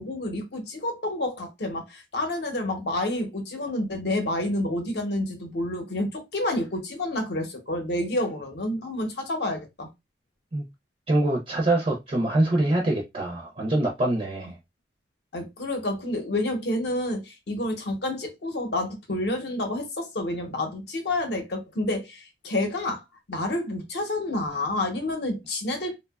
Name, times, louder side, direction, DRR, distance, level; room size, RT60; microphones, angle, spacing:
voice 1, 0.0-9.9 15.3-26.0, left 1 dB, 65° left, 0.7 m, -29 dB
voice 2, 11.1-14.5, right 1 dB, 35° right, 0.4 m, -24 dB
2.8 x 2.2 x 2.2 m
head